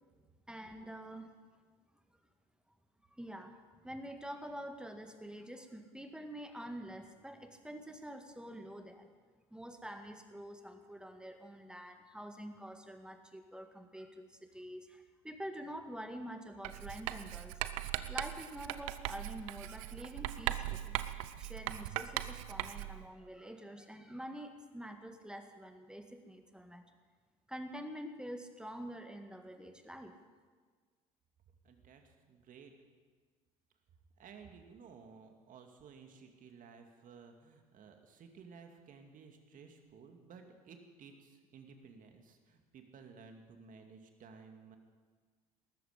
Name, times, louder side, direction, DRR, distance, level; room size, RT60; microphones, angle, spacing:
voice 1, 0.5-1.3 3.1-9.1 9.5-17.6 18.1-21.0 21.4-26.8 27.5-30.2, equal, 5° right, 6 dB, 1.9 m, -47 dB
Writing, 16.6-23.0, right 14 dB, 70° right, 0.7 m, -39 dB
voice 2, 31.6-32.7 34.2-44.8, right 5 dB, 50° right, 5 dB, 2.3 m, -55 dB
19.0 x 13.5 x 5.2 m, 1.5 s
hypercardioid pair, 60°, 17 cm